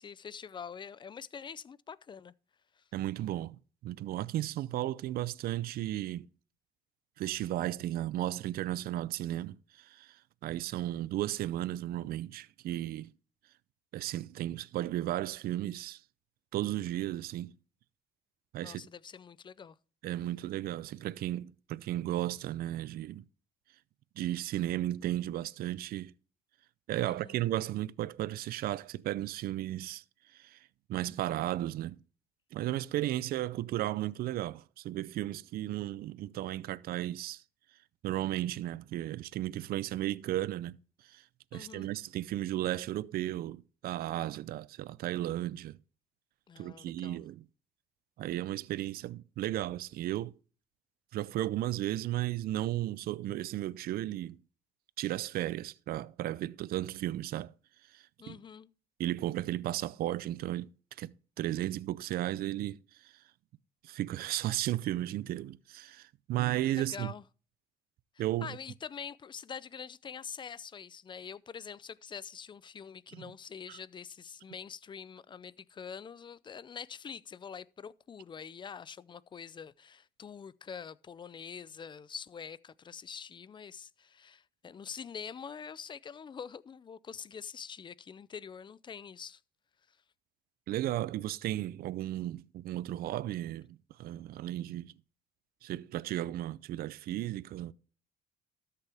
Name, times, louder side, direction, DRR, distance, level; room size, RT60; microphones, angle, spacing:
voice 1, 0.0-2.3 2.8-2.9 18.6-19.8 27.1-27.4 41.5-41.9 46.5-47.2 58.2-58.7 66.7-67.2 68.4-89.4 89.9-90.0, left 7 dB, 30° left, 0.4 m, -45 dB
voice 2, 2.9-6.3 7.2-13.1 13.9-16.0 16.5-17.5 18.5-18.9 20.0-23.2 24.2-26.1 26.9-30.0 30.3-30.6 30.9-32.0 32.5-37.4 38.0-40.8 41.0-41.2 41.5-45.8 46.6-47.4 48.2-50.4 51.1-54.4 55.0-57.5 57.9-58.3 59.0-60.7 61.0-63.1 63.8-67.1 68.2-68.5 73.1-73.3 73.7-73.8 90.7-94.9 95.6-97.7, right 14 dB, 60° right, 0.5 m, -34 dB
13.0 x 6.9 x 3.4 m
cardioid pair, 110°, 17 cm